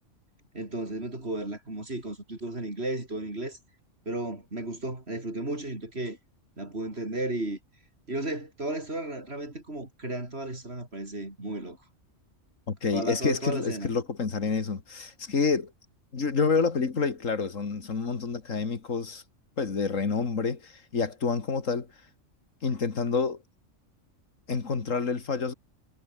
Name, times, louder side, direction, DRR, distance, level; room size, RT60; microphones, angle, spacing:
voice 1, 0.5-3.6 4.1-6.2 6.6-7.6 8.1-11.8 12.9-13.9, right 2 dB, 55° right, 5.8 m, -34 dB
voice 2, 12.7-15.7 16.1-19.2 19.6-21.9 22.6-23.4 24.5-25.5, left 4 dB, 90° left, 2.6 m, -28 dB
omnidirectional pair, 1.3 m